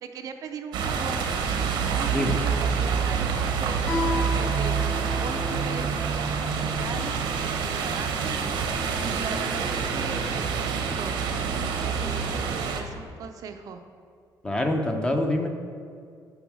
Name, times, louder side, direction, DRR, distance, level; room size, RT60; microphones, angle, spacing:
voice 1, 0.0-1.2 1.9-4.8 5.2-8.4 9.0-11.2 11.7-13.8, right 6 dB, 50° right, 6 dB, 0.5 m, -38 dB
sound 1, 0.7-12.8, right 6 dB, 85° right, 0.9 m, -27 dB
Guitar, 3.8-7.1, left 3 dB, 25° left, 2.0 m, -34 dB
voice 2, 14.4-15.5, left 1 dB, 10° left, 4 dB, 0.6 m, -25 dB
6.9 x 5.4 x 6.1 m, 2.3 s
cardioid pair, 180°, 8 cm